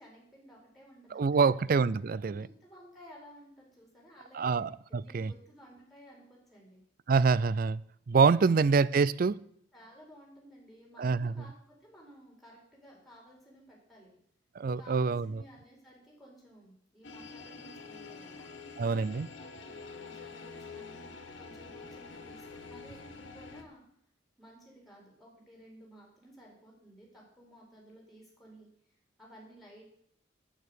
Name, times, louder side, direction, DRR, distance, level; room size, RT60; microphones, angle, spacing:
voice 1, 0.0-1.6 2.2-4.6 4.9-6.8 9.7-14.2 14.7-18.5 19.4-21.1 21.4-23.8 24.4-28.7 29.2-29.9, equal, ahead, 4.8 m, -55 dB
voice 2, 1.1-2.4 4.3-5.3 7.1-7.8 8.1-9.4 11.0-11.3 14.6-15.3 18.8-19.3, right 5 dB, 50° right, 0.4 m, -26 dB
sound 1, 17.0-23.6, left 4 dB, 85° left, 1.6 m, -47 dB
9.2 x 8.9 x 8.1 m
head